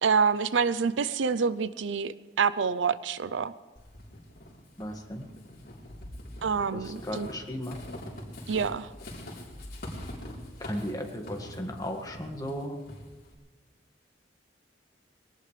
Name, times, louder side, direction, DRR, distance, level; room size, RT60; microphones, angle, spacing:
voice 1, 0.0-3.5 6.4-7.3 8.5-8.9, right 5 dB, 75° right, 15 dB, 0.6 m, -27 dB
Walk footsteps / Squeak, 3.8-13.3, left 1 dB, 55° left, 3.7 m, -43 dB
voice 2, 4.8-5.2 6.7-7.8 10.6-12.8, equal, 20° left, 2 dB, 1.8 m, -36 dB
22.5 x 18.5 x 3.3 m, 1.3 s
head